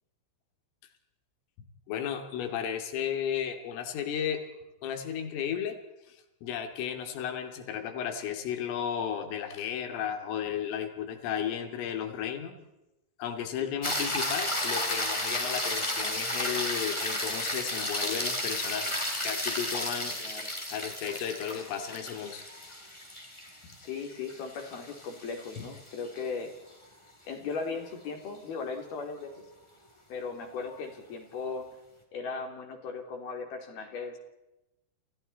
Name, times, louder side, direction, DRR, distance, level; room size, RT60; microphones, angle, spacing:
voice 1, 1.9-4.5 4.8-5.8 6.1-12.6 13.2-18.9 19.3-20.2 20.7-22.4, left 8 dB, 80° left, 6 dB, 5.3 m, -34 dB
sound 1, 13.8-26.2 30.7-30.8, left 1 dB, 5° left, 3.4 m, -33 dB
voice 2, 20.2-20.5 23.8-26.5 27.3-29.5 30.1-31.8 32.1-34.2, left 4 dB, 50° left, 5 dB, 4.9 m, -37 dB
29.5 x 29.5 x 4.3 m, 0.94 s
omnidirectional pair, 5.8 m